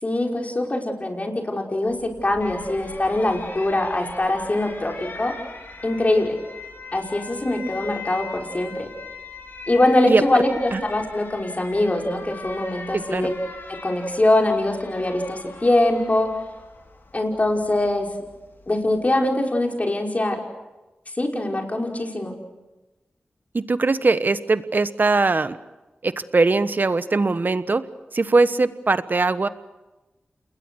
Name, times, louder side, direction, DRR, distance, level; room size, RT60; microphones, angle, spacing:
voice 1, 0.0-5.4 5.8-6.4 6.9-8.9 9.7-13.3 13.7-16.3 17.1-18.1 18.7-20.4 21.2-22.4, left 1 dB, 35° left, 1 dB, 5.4 m, -22 dB
Alarm, 1.9-19.1, left 4 dB, 65° left, 4.0 m, -41 dB
voice 2, 12.9-13.3 23.5-25.6 26.0-27.8 28.1-29.5, right 3 dB, 50° right, 13 dB, 1.2 m, -21 dB
29.0 x 21.0 x 6.5 m, 1.1 s
cardioid pair, 45°, 4 cm